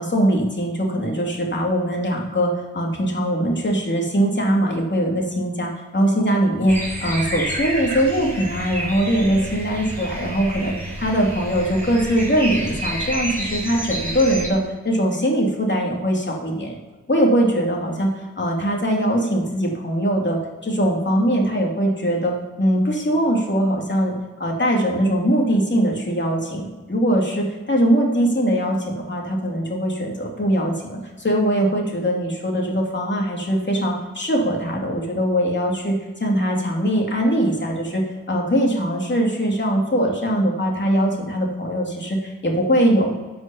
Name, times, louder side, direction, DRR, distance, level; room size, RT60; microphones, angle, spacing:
voice 1, 0.0-16.7 17.1-24.1 24.4-43.1, equal, 40° left, 0 dB, 2.8 m, -21 dB
sound 1, 6.7-14.5, right 1 dB, 5° left, 3.9 m, -29 dB
11.0 x 6.2 x 7.0 m, 1.3 s
wide cardioid pair, 75°, 30 cm